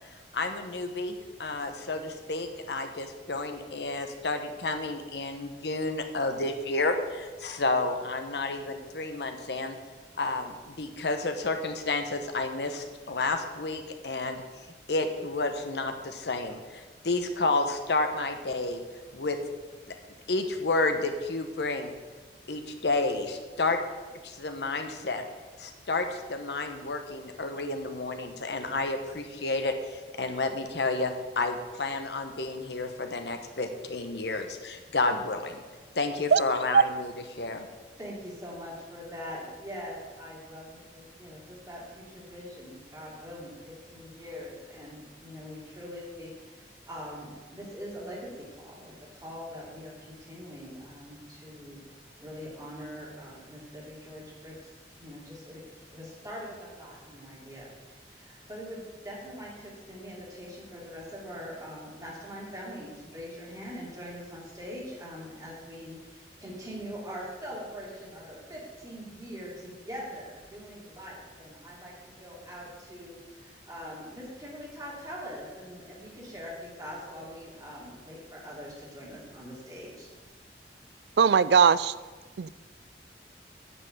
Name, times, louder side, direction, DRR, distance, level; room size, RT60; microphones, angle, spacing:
voice 1, 0.3-9.8 10.2-14.4 14.9-18.8 19.1-19.4 19.9-20.0 20.3-21.9 22.5-23.8 24.2-25.2 25.6-35.6 35.9-37.1 37.4-37.7, left 3 dB, 70° left, 6 dB, 1.1 m, -30 dB
voice 2, 38.0-51.8 52.2-54.6 55.0-71.9 72.2-80.1, equal, 20° right, -5 dB, 2.9 m, -43 dB
voice 3, 81.2-81.9 82.4-82.5, right 6 dB, 70° right, 17 dB, 0.4 m, -19 dB
9.7 x 5.5 x 7.6 m, 1.3 s
head